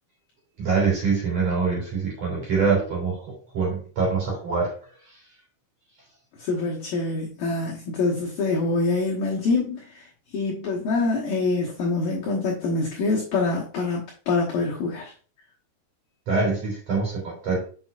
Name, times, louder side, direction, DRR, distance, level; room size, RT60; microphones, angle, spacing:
voice 1, 0.6-3.3 3.5-4.7 16.3-17.6, right 4 dB, 35° right, 3.8 m, -24 dB
voice 2, 6.4-9.8 10.3-15.1, left 3 dB, 70° left, 2.2 m, -25 dB
8.1 x 6.0 x 2.5 m
omnidirectional pair, 5.6 m